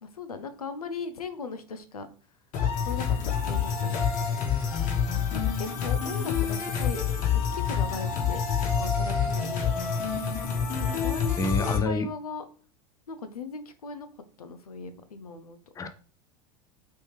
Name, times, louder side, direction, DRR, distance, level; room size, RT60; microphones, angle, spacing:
voice 1, 0.0-2.1 2.8-4.0 5.3-7.0 7.3-9.8 10.8-12.4 13.1-14.1 14.4-15.6, left 4 dB, 90° left, 9 dB, 0.5 m, -38 dB
sound 1, 2.5-11.8, left 7 dB, 45° left, 1.2 m, -27 dB
voice 2, 11.4-12.1 15.8-15.9, left 2 dB, 20° left, 9 dB, 0.5 m, -27 dB
3.1 x 3.0 x 3.3 m, 0.40 s
hypercardioid pair, 85°, 19 cm